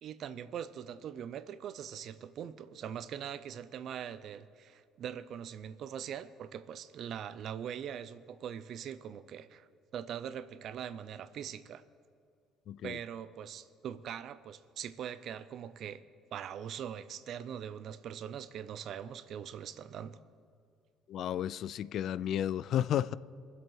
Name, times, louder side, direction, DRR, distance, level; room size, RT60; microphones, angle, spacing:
voice 1, 0.0-11.8 12.8-16.0 16.3-20.2, right 9 dB, 60° right, 0.6 m, -42 dB
voice 2, 12.7-13.0 21.1-23.1, left 10 dB, 65° left, 0.3 m, -32 dB
23.0 x 7.9 x 4.7 m
supercardioid pair, 90°, 0 cm